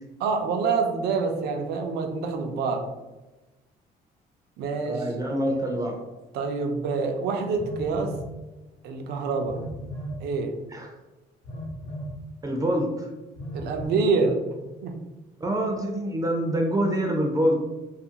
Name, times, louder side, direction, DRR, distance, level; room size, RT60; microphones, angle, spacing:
voice 1, 0.2-2.9 4.6-5.0 6.3-8.1 8.8-9.6 10.2-10.6 13.5-14.4 14.8-14.9, right 4 dB, 75° right, 4 dB, 0.5 m, -26 dB
voice 2, 4.9-6.0 10.7-10.9 12.4-13.1 15.4-17.5, right 1 dB, 20° right, 2 dB, 0.4 m, -25 dB
Telephone, 7.6-8.3 9.5-10.2 11.4-12.2 13.4-13.9, equal, 65° left, 0.8 m, -35 dB
2.7 x 2.4 x 2.7 m, 1.1 s
cardioid pair, 110°, 17 cm